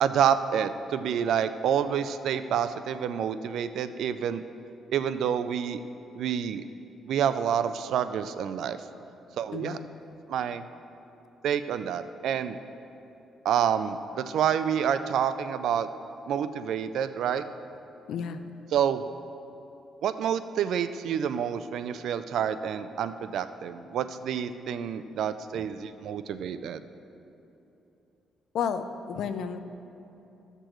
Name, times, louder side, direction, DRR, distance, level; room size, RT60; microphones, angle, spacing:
voice 1, 0.0-4.4 4.9-5.8 6.2-6.6 7.1-8.8 9.4-9.8 10.3-10.6 11.4-12.6 13.4-15.9 16.3-17.4 18.7-19.0 20.0-26.8, right 8 dB, 75° right, 11 dB, 0.4 m, -28 dB
voice 2, 9.5-9.9 18.1-18.4 28.5-29.6, left 7 dB, 75° left, 10 dB, 0.5 m, -32 dB
14.5 x 6.7 x 3.1 m, 2.9 s
cardioid pair, 90°, 0 cm